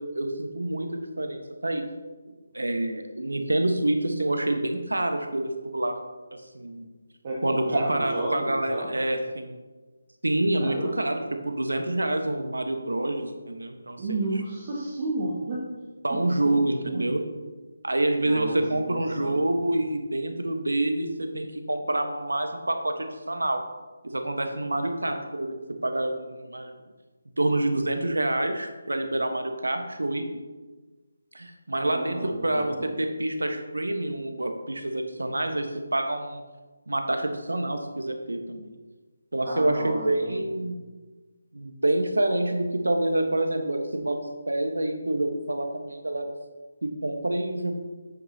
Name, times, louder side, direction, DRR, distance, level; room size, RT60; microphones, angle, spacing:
voice 1, 0.0-1.8 2.5-6.0 6.3-6.9 7.4-9.5 10.2-14.3 16.0-17.2 17.8-23.6 24.1-26.7 27.4-30.2 31.3-36.4 36.9-38.7 39.3-40.8 41.5-44.2 44.5-46.4 46.8-47.8, right 1 dB, 85° right, 5 dB, 1.2 m, -27 dB
voice 2, 7.2-8.9 10.6-11.1 14.0-15.7 16.1-16.2 16.4-16.6 16.9-17.0 18.2-19.4 31.8-32.9 39.4-40.5, right 2 dB, 35° right, -6 dB, 1.7 m, -32 dB
9.5 x 7.9 x 2.8 m, 1.3 s
figure-of-eight pair, 155°, 0 cm